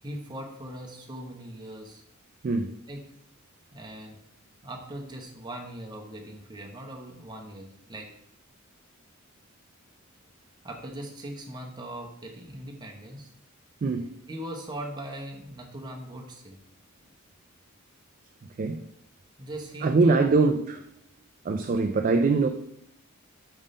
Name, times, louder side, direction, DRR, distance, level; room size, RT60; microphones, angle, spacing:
voice 1, 0.0-2.0 2.9-3.0 3.7-4.2 4.6-8.1 10.6-13.3 14.3-16.6 19.4-20.2, right 1 dB, 20° right, 0.9 m, -40 dB
voice 2, 2.4-2.8 13.8-14.1 18.6-18.8 19.8-20.8 21.4-22.5, right 3 dB, 40° right, 0.3 m, -23 dB
5.3 x 3.7 x 4.9 m
head